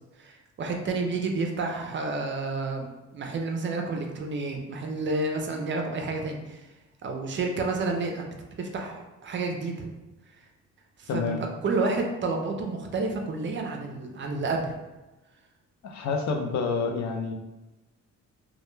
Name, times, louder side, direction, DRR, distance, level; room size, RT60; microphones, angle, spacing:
voice 1, 0.2-2.9 3.1-6.7 7.0-8.3 8.6-9.9 11.0-11.4 11.6-14.7, right 3 dB, 40° right, 3 dB, 0.4 m, -30 dB
voice 2, 11.1-11.4 15.8-17.3, left 4 dB, 65° left, 3 dB, 0.5 m, -28 dB
2.2 x 2.1 x 3.1 m, 1.1 s
cardioid pair, 90°, 30 cm